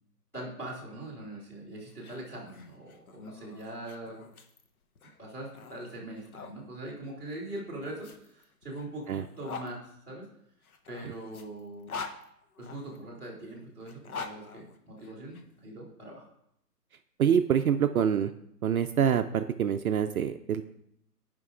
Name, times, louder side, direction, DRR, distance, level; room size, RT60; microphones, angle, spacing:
voice 1, 0.3-4.2 5.2-10.3 10.9-11.9 12.6-16.2, right 1 dB, 5° left, -10 dB, 1.5 m, -42 dB
sound 1, 1.9-6.6 7.5-9.7 10.6-13.0 13.8-15.4, left 5 dB, 60° left, 0.9 m, -44 dB
voice 2, 17.2-18.3 18.6-20.6, right 8 dB, 60° right, 8 dB, 0.5 m, -25 dB
14.0 x 5.2 x 2.4 m, 0.75 s
hypercardioid pair, 165°, 49 cm